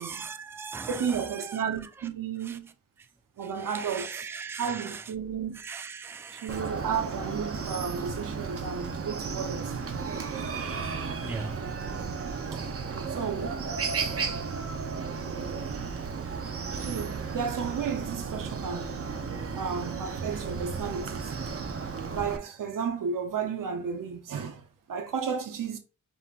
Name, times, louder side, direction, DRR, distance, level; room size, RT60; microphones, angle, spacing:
voice 1, 0.0-1.6 2.0-2.1 2.4-2.6 3.4-5.1 5.5-6.6 11.2-11.5 12.0-12.1 12.5-12.7 16.4-16.5 19.4-19.6, right 5 dB, 10° right, 0.3 m, -39 dB
voice 2, 0.9-2.7 3.4-4.3 4.6-5.6 6.3-9.8 12.5-12.6 13.1-13.6 16.8-19.3 19.6-21.3 22.1-25.8, right 6 dB, 85° right, 0.8 m, -33 dB
Chicken rooster, 6.5-22.4, right 5 dB, 45° right, 0.7 m, -34 dB
5.4 x 2.7 x 2.4 m
wide cardioid pair, 95°, 32 cm